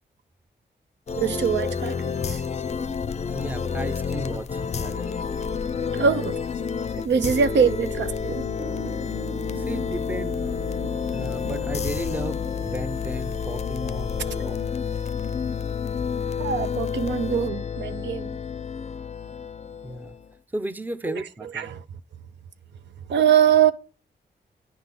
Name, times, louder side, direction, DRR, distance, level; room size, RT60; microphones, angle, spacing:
sound 1, 1.1-20.3, left 6 dB, 40° left, 0.5 m, -29 dB
voice 1, 1.2-2.4 5.9-6.4 7.0-8.4 16.4-18.3 21.1-21.8 23.1-23.7, right 8 dB, 85° right, 0.6 m, -23 dB
voice 2, 3.3-5.2 9.5-10.4 11.1-14.6 19.8-20.1 20.5-21.7, right 1 dB, 10° right, 0.5 m, -34 dB
Piano, 8.6-13.5, right 3 dB, 55° right, 1.1 m, -42 dB
9.9 x 3.7 x 5.9 m
wide cardioid pair, 105°, 18 cm